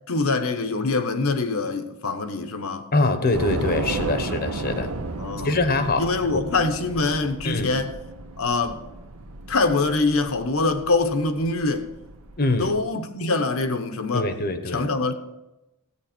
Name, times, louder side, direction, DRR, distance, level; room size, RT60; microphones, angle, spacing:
voice 1, 0.1-2.9 5.2-5.5 6.0-7.9 8.4-8.8 9.5-11.9 12.6-14.3 14.7-15.1, left 3 dB, 70° left, 1.0 m, -24 dB
voice 2, 2.9-4.9 5.4-6.0 6.3-6.5 7.4-7.7 12.4-12.7 14.1-14.9, left 2 dB, 45° left, 0.9 m, -23 dB
Train / Subway metro underground, 3.3-12.8, right 3 dB, 85° right, 1.0 m, -34 dB
13.5 x 8.9 x 4.4 m
head